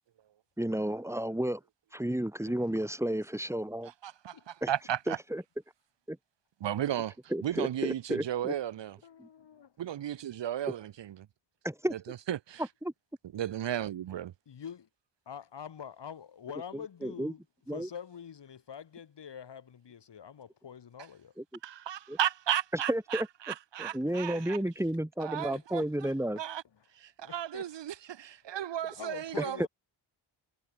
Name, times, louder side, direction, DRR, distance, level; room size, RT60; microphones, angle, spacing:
voice 1, 0.6-1.6 1.9-3.9 4.6-4.7 5.1-5.4 6.1-6.2 7.3-8.5 9.2-9.3 11.6-11.9 12.8-12.9 17.0-17.3 17.7-17.9 21.4-21.5 22.1-22.2 22.9-23.3 23.8-26.4 29.4-29.7, right 1 dB, 5° right, 3.9 m, -32 dB
voice 2, 4.0-5.2 6.6-7.2 7.4-9.0 9.8-11.2 11.9-12.6 13.3-14.3 21.6-24.6 25.2-25.8 26.4-26.6 27.0-29.7, right 11 dB, 60° right, 1.0 m, -34 dB
voice 3, 9.0-9.7 14.5-14.9 15.2-17.4 17.7-21.3 24.0-25.0 25.5-26.4 27.2-27.7 28.8-29.7, left 8 dB, 60° left, 6.8 m, -46 dB
wide cardioid pair, 135°, 48 cm